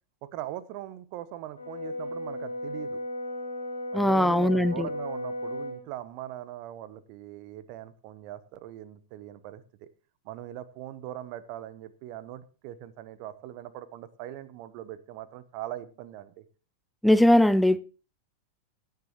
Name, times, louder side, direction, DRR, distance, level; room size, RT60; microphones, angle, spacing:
voice 1, 0.3-3.0 3.9-9.9 10.2-16.4, right 13 dB, 45° right, 0.9 m, -41 dB
Brass instrument, 1.6-5.8, left 1 dB, 75° left, 2.8 m, -35 dB
voice 2, 3.9-4.9 17.0-17.8, left 1 dB, ahead, 0.5 m, -20 dB
16.0 x 10.5 x 3.0 m
figure-of-eight pair, 90°, 0 cm